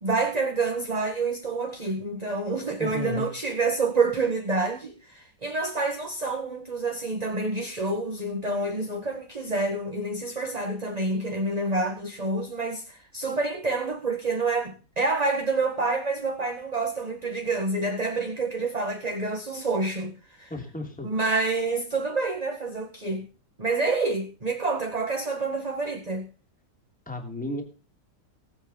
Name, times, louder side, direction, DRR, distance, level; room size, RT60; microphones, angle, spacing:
voice 1, 0.0-20.1 20.4-20.5 21.0-23.3 23.6-26.3, right 3 dB, 25° right, 1.7 m, -28 dB
voice 2, 2.8-3.3 20.5-21.1 27.1-27.6, left 2 dB, 5° left, 2.8 m, -33 dB
19.0 x 8.1 x 5.5 m
omnidirectional pair, 1.9 m